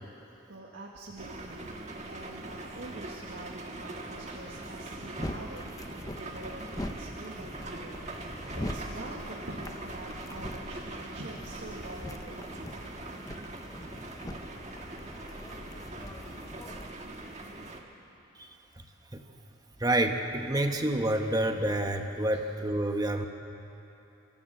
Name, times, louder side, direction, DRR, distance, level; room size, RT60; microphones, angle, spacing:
voice 1, 0.5-12.4 22.3-22.4, right 2 dB, 70° right, -3 dB, 1.8 m, -45 dB
sound 1, 1.2-17.8, right 2 dB, 35° right, 1.7 m, -42 dB
sound 2, 4.3-16.9, left 1 dB, 20° left, 1.0 m, -43 dB
voice 2, 19.8-23.3, right 1 dB, 20° right, 4 dB, 1.2 m, -28 dB
29.5 x 14.5 x 7.9 m, 3.0 s
head